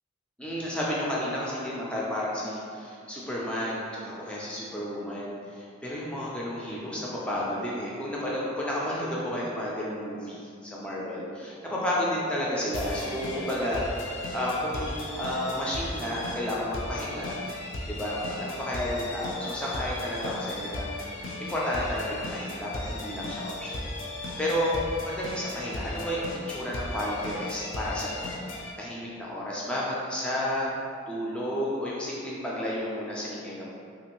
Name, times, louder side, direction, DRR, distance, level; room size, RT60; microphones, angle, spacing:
voice 1, 0.4-13.8 14.3-17.4 17.9-21.1 21.4-23.8 24.4-24.8 25.0-28.2 28.8-30.7 31.1-33.7, left 1 dB, 5° left, -6 dB, 0.3 m, -31 dB
sound 1, 12.7-28.7, left 2 dB, 70° left, 0.4 m, -36 dB
2.9 x 2.5 x 2.9 m, 2.4 s
head